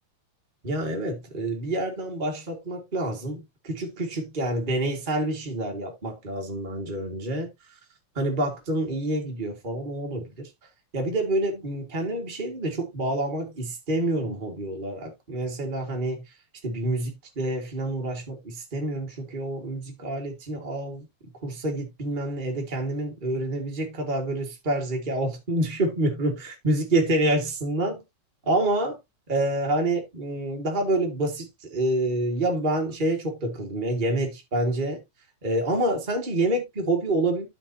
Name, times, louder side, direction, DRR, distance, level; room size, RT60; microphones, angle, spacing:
voice 1, 0.6-7.8 8.1-10.5 10.9-16.2 16.6-21.0 21.4-26.3 26.6-28.0 28.4-29.0 29.3-35.0 35.4-37.5, right 1 dB, 30° right, 0.8 m, -27 dB
12.5 x 5.7 x 2.7 m
omnidirectional pair, 4.0 m